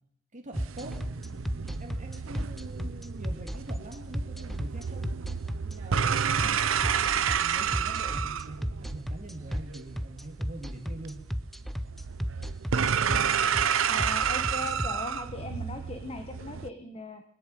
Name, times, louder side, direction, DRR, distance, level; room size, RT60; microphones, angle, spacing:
voice 1, 0.3-1.0 1.8-5.1 5.6-11.2 13.9-14.1, right 1 dB, 40° right, 3 dB, 2.1 m, -44 dB
sound 1, 0.5-16.7, right 7 dB, 85° right, 0.6 m, -30 dB
sound 2, 0.6-14.9, equal, ahead, 0.6 m, -33 dB
voice 2, 13.8-17.2, left 2 dB, 30° left, 7 dB, 1.1 m, -39 dB
21.0 x 7.1 x 9.2 m, 0.72 s
head